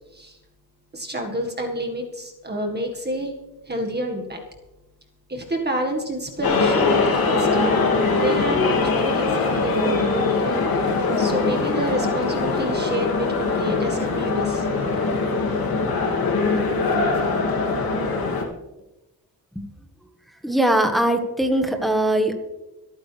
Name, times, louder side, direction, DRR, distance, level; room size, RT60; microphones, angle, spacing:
voice 1, 0.9-3.3 3.7-4.4 5.3-7.7 8.2-10.5 11.2-14.7, equal, 25° right, 2 dB, 1.8 m, -28 dB
sound 1, 6.4-18.4, left 3 dB, 65° left, 2.7 m, -22 dB
voice 2, 20.4-22.4, right 1 dB, ahead, 5 dB, 1.6 m, -21 dB
26.0 x 9.2 x 3.4 m, 1.0 s
wide cardioid pair, 125°, 38 cm